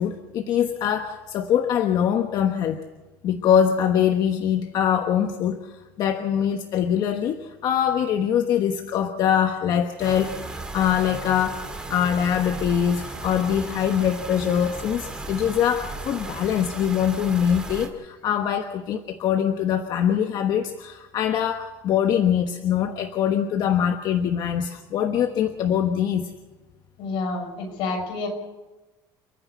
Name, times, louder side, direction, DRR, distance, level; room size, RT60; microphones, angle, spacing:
voice 1, 0.0-2.8 3.2-26.3, left 9 dB, 50° left, 6 dB, 1.2 m, -23 dB
sound 1, 10.0-17.9, right 2 dB, 10° right, 2.3 m, -35 dB
voice 2, 27.0-28.3, left 3 dB, 70° left, 3 dB, 6.5 m, -29 dB
29.5 x 10.0 x 9.4 m, 1.1 s
cardioid pair, 160°, 9 cm